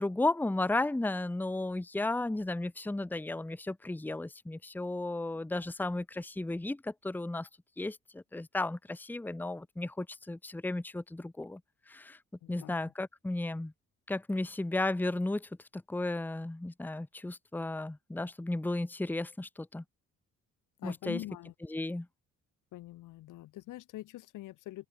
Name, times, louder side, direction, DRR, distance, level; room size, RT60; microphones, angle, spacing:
voice 1, 0.0-7.5 7.8-11.6 11.9-12.2 12.5-13.7 14.1-19.8 20.8-21.2 21.7-22.1, left 2 dB, 5° left, 0.9 m, -34 dB
voice 2, 12.4-12.8 20.8-21.5 22.7-24.9, left 16 dB, 90° left, 2.5 m, -44 dB
open air
cardioid pair, 90°, 30 cm